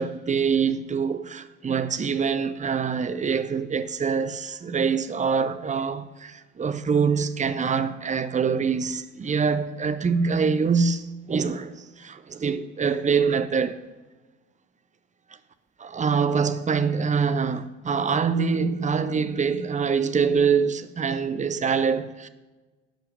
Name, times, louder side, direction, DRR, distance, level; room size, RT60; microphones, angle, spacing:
voice 1, 0.0-13.8 15.8-22.3, right 6 dB, 20° right, 0.6 m, -25 dB
11.0 x 5.7 x 5.1 m
hypercardioid pair, 60°, 39 cm